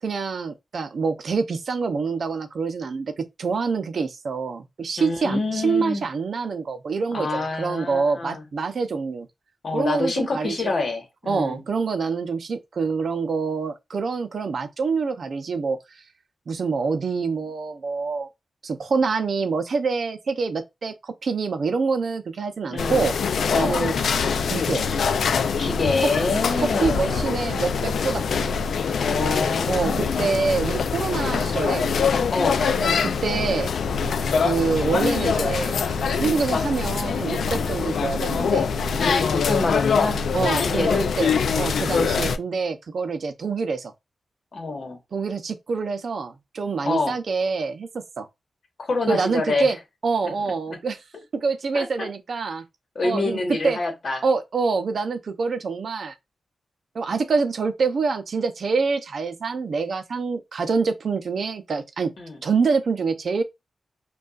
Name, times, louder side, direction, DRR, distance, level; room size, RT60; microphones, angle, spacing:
voice 1, 0.0-9.3 9.7-10.7 11.3-15.8 16.5-18.3 18.6-23.1 23.5-23.9 24.4-24.9 26.6-28.5 29.7-31.9 32.8-33.7 34.4-38.7 40.3-43.9 45.1-48.3 49.1-49.8 50.0-51.0 51.3-52.6 53.0-53.8 54.2-56.1 56.9-62.1 62.4-63.4, right 4 dB, 55° right, 0.6 m, -26 dB
voice 2, 5.0-6.0 7.1-8.4 9.6-11.6 22.7-23.1 23.5-23.8 25.6-27.2 29.0-30.1 32.3-32.6 39.0-40.2 40.6-41.1 44.5-45.0 46.8-47.2 48.8-49.7 50.2-50.3 50.7-50.8 51.7-52.1 52.9-54.2 62.2-62.4, left 3 dB, 45° left, 1.1 m, -26 dB
sound 1, 22.8-42.4, left 6 dB, 80° left, 0.3 m, -24 dB
5.2 x 2.4 x 2.4 m
wide cardioid pair, 180°, 0 cm